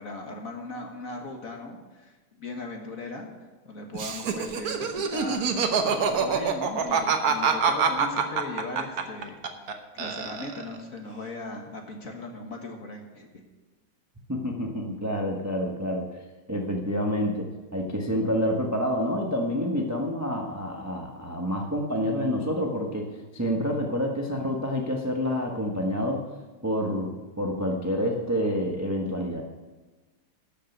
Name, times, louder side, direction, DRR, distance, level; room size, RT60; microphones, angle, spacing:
voice 1, 0.0-3.3 3.7-13.4, left 2 dB, 40° left, 2 dB, 1.7 m, -38 dB
Laughter, 3.9-9.7 10.0-10.8, right 6 dB, 50° right, 1.3 m, -25 dB
voice 2, 14.3-16.1 16.5-26.2 26.6-29.4, equal, 10° right, 1 dB, 0.9 m, -28 dB
12.5 x 6.6 x 8.0 m, 1.3 s
omnidirectional pair, 2.4 m